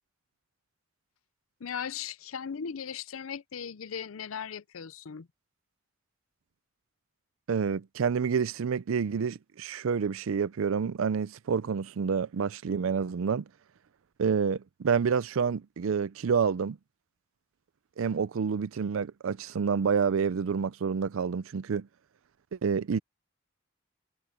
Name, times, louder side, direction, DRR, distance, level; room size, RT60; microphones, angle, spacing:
voice 1, 1.6-5.3, left 7 dB, 85° left, 0.6 m, -38 dB
voice 2, 7.5-13.4 14.2-16.8 18.0-21.9 22.5-23.0, right 6 dB, 80° right, 0.4 m, -28 dB
head